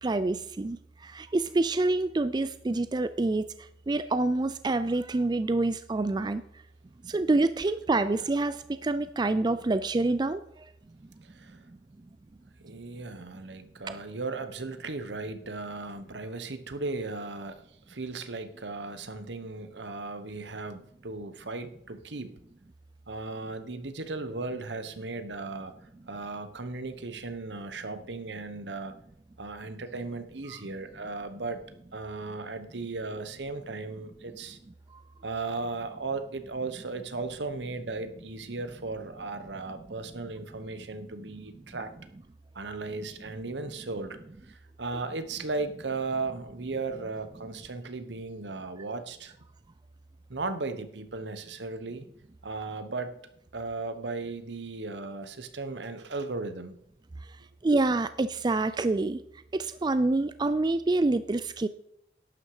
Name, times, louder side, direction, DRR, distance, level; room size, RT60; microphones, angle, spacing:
voice 1, 0.0-3.5 3.9-6.4 7.0-10.7 13.9-14.0 57.6-59.2 59.5-61.7, right 2 dB, 25° right, 13 dB, 0.4 m, -27 dB
voice 2, 11.2-11.6 12.6-22.4 23.1-25.7 26.1-29.0 29.4-31.6 31.9-34.6 35.2-41.9 42.5-44.2 44.5-49.3 50.3-52.0 52.4-53.2 53.5-56.7, right 3 dB, 75° right, 10 dB, 1.2 m, -36 dB
11.5 x 9.1 x 4.9 m, 0.72 s
head